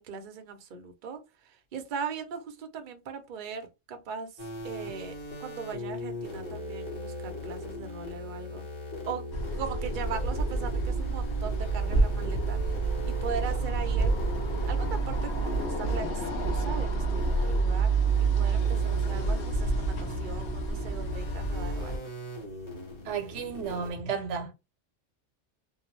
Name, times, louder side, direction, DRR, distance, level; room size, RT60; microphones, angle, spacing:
voice 1, 0.0-8.7 9.1-9.3 9.6-18.0 18.3-22.0, right 6 dB, 55° right, 0.6 m, -39 dB
sound 1, 4.4-23.9, left 1 dB, 25° left, 1.2 m, -40 dB
sound 2, 9.3-22.0, right 3 dB, 65° left, 0.9 m, -28 dB
voice 2, 23.0-24.5, right 6 dB, 80° right, 0.9 m, -33 dB
2.7 x 2.0 x 3.0 m
omnidirectional pair, 1.2 m